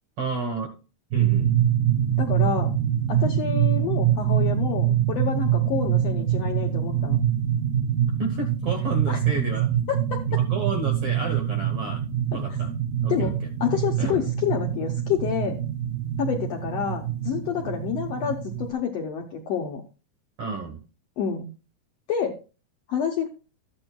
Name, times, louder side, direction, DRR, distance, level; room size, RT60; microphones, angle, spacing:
voice 1, 0.2-0.7 1.1-1.5 8.2-9.7 10.3-12.0 12.3-12.7 13.0-13.3 14.0-14.2 20.4-20.8, right 4 dB, 60° right, 4 dB, 1.6 m, -31 dB
sound 1, 1.1-18.7, right 10 dB, 90° right, 3.3 m, -25 dB
voice 2, 2.2-2.7 3.1-7.2 9.1-9.2 9.9-10.4 13.1-15.6 16.2-19.8 21.2-21.5 22.1-22.4 22.9-23.3, left 8 dB, 70° left, 2 dB, 1.6 m, -28 dB
13.5 x 8.8 x 2.3 m, 0.33 s
omnidirectional pair, 4.0 m